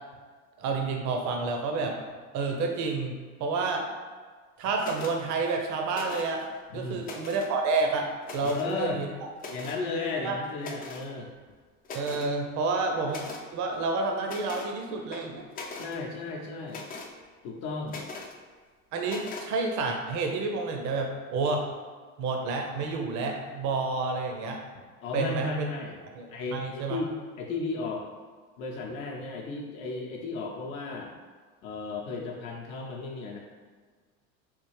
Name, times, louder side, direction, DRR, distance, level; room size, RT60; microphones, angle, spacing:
voice 1, 0.6-2.0 2.3-3.1 3.4-3.8 4.6-6.4 6.7-8.1 8.3-9.1 10.2-10.4 11.9-13.2 13.5-15.4 18.9-21.7 22.2-24.6 25.1-25.7 26.2-27.0, right 3 dB, 40° right, 2 dB, 0.6 m, -29 dB
sound 1, 4.8-5.2 5.9-6.4 6.9-7.5 8.2-8.7 9.4-9.8 10.6-11.1 11.5-11.6 11.8-12.3 13.1-13.5 14.2-14.7 15.1-16.0 16.7-17.1 17.9-18.4 19.1-19.5, left 3 dB, 20° left, 0.3 m, -41 dB
voice 2, 6.7-7.1 8.4-9.0 9.5-11.3 15.8-16.8 17.4-18.1 25.0-26.0 26.3-27.1 27.4-28.1 28.6-31.1 31.6-33.4, left 3 dB, 65° left, -1 dB, 0.7 m, -34 dB
3.6 x 2.4 x 3.1 m, 1.5 s
hypercardioid pair, 80°, 43 cm